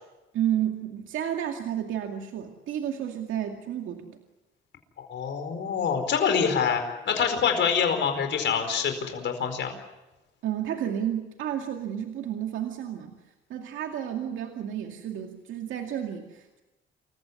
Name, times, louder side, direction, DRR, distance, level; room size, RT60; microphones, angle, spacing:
voice 1, 0.3-4.2 10.4-13.1 13.5-16.6, right 10 dB, 80° right, 3 dB, 2.3 m, -31 dB
voice 2, 5.0-9.7, left 7 dB, 65° left, 6 dB, 4.7 m, -26 dB
28.0 x 15.0 x 9.7 m, 1.1 s
cardioid pair, 90°, 20 cm